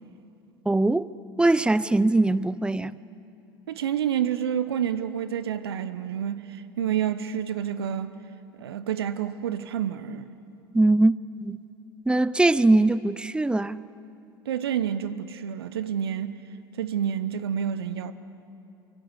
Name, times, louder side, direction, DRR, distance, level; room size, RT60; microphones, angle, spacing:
voice 1, 0.7-1.1 1.4-3.0 10.7-11.1 11.4-11.6 12.1-13.8, right 2 dB, 5° right, 0.6 m, -21 dB
voice 2, 3.7-8.2 8.6-10.3 14.5-16.4 16.8-18.1, right 9 dB, 75° right, 0.9 m, -29 dB
28.5 x 24.0 x 8.1 m
figure-of-eight pair, 75°, 13 cm